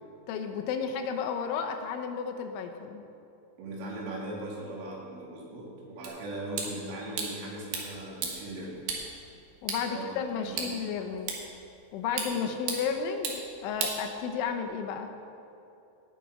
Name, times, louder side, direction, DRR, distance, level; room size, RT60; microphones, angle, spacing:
voice 1, 0.3-3.0 9.6-11.4 11.9-15.1, left 6 dB, 85° left, 5 dB, 3.2 m, -33 dB
voice 2, 3.6-8.9 9.8-10.7 12.2-12.6, right 1 dB, 85° right, -3 dB, 4.8 m, -39 dB
sound 1, 6.0-14.6, right 5 dB, 65° right, 2.9 m, -38 dB
18.0 x 7.1 x 4.9 m, 2.9 s
omnidirectional pair, 5.5 m